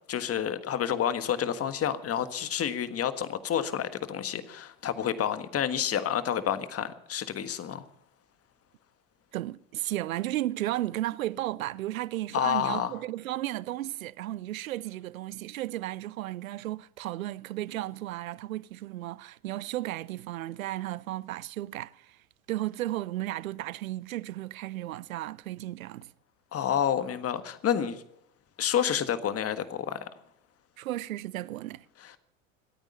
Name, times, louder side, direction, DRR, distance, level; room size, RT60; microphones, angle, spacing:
voice 1, 0.1-7.9 12.3-12.9 26.5-28.0 28.6-30.1 32.0-32.2, left 9 dB, 35° left, 1.5 m, -29 dB
voice 2, 9.3-22.1 22.5-26.1 30.8-31.8, right 15 dB, 85° right, 0.6 m, -34 dB
25.5 x 8.9 x 5.6 m
hypercardioid pair, 80°, 40 cm